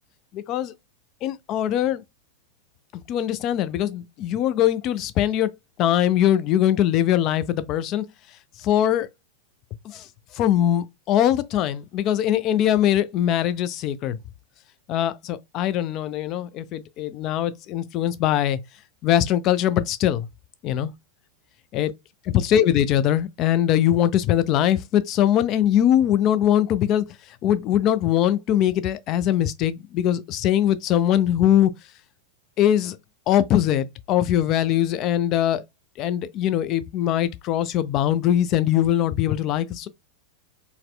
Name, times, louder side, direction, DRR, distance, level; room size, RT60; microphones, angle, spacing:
voice 1, 0.3-0.7 1.2-2.0 2.9-5.5 5.8-8.1 8.6-9.1 9.8-10.1 10.3-14.2 14.9-18.6 19.0-20.3 20.6-20.9 21.7-21.9 22.3-27.1 27.4-31.7 32.6-33.0 33.3-35.6 36.0-39.9, left 11 dB, 35° left, 0.3 m, -21 dB
4.1 x 2.0 x 2.2 m
figure-of-eight pair, 90°, 0 cm